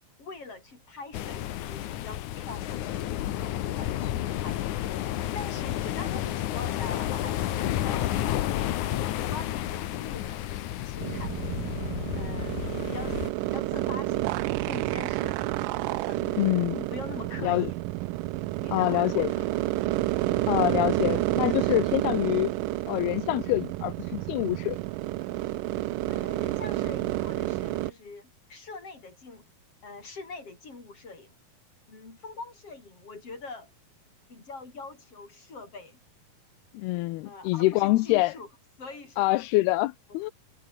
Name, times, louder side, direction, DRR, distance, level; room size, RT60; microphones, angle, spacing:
voice 1, 0.2-4.8 5.3-8.7 9.3-11.3 12.2-13.2 13.5-15.6 16.1-17.7 18.6-19.5 20.1-20.3 26.1-29.4 29.8-31.4 31.9-33.7 34.3-36.0 37.2-38.5 38.8-39.4 40.1-40.2, left 3 dB, 35° left, 7.3 m, -43 dB
sound 1, 1.1-13.3, left 13 dB, 65° left, 2.2 m, -31 dB
sound 2, 11.0-27.9, right 19 dB, 80° right, 2.0 m, -30 dB
voice 2, 16.4-16.9 17.4-17.7 18.7-19.3 20.5-22.5 22.9-24.8 36.7-38.3 39.2-40.3, left 19 dB, 85° left, 2.7 m, -25 dB
omnidirectional pair, 4.4 m